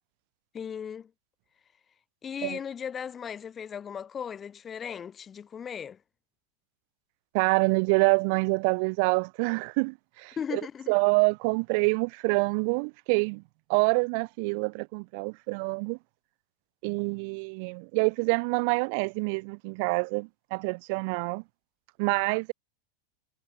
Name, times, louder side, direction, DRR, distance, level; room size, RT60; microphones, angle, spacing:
voice 1, 0.5-1.1 2.2-6.0 10.4-10.9, left 7 dB, 20° left, 1.1 m, -37 dB
voice 2, 7.3-10.6 10.9-13.4 13.7-16.0 16.8-21.4 22.0-22.5, right 34 dB, 45° right, 1.0 m, -26 dB
figure-of-eight pair, 90°, 0 cm